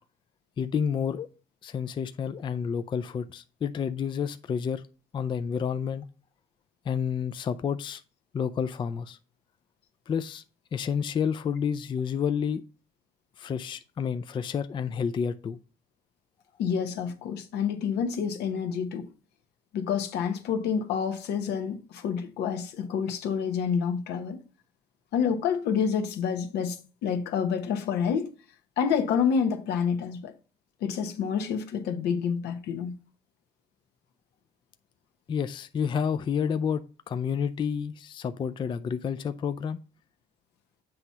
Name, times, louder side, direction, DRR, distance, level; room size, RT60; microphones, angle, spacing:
voice 1, 0.6-1.3 1.6-4.8 5.1-6.1 6.9-8.0 8.3-9.2 10.1-10.4 10.7-12.6 13.4-15.6 35.3-39.8, left 7 dB, 30° left, 0.4 m, -30 dB
voice 2, 16.6-19.1 19.7-24.4 25.1-28.3 28.8-30.3 30.8-32.9, left 7 dB, 80° left, 1.0 m, -28 dB
7.8 x 2.9 x 5.6 m
cardioid pair, 110°, 17 cm